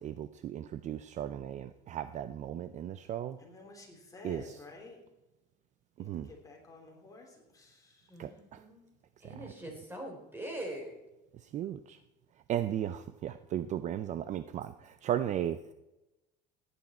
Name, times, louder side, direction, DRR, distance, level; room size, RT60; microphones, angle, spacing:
voice 1, 0.0-3.4 4.2-4.6 6.0-6.3 8.2-8.6 11.3-12.0 12.5-15.6, right 11 dB, 35° right, 12 dB, 0.5 m, -36 dB
voice 2, 3.4-5.0 6.0-8.2, left 3 dB, 15° left, 0 dB, 3.2 m, -51 dB
voice 3, 8.1-8.8 9.2-10.9, right 1 dB, 10° right, 2 dB, 3.5 m, -42 dB
16.5 x 9.8 x 4.3 m, 0.98 s
cardioid pair, 135°, 20 cm